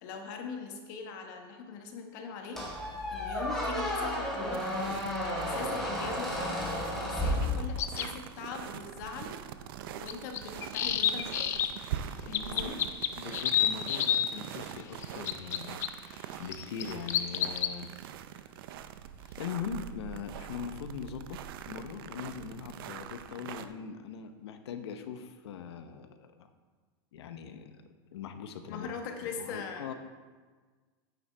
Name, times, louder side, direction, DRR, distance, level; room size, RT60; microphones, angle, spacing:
voice 1, 0.0-2.6 3.1-4.7 5.3-9.4 10.0-11.7 12.3-12.8 28.7-29.9, left 5 dB, 45° left, 4 dB, 1.2 m, -41 dB
Squeak, 2.6-8.1, left 1 dB, 5° left, 1.7 m, -32 dB
sound 1, 4.5-23.7, right 10 dB, 60° right, 0.5 m, -43 dB
sound 2, 7.8-8.1 10.1-11.7 12.3-14.3 15.0-15.9 16.5-17.7, left 10 dB, 20° left, 0.3 m, -29 dB
voice 2, 12.3-12.7 13.2-17.9 19.2-26.5 27.1-27.8 28.1-28.9 29.4-29.9, left 7 dB, 85° left, 8 dB, 0.9 m, -41 dB
9.6 x 9.0 x 3.4 m, 1.4 s
supercardioid pair, 170°, 14 cm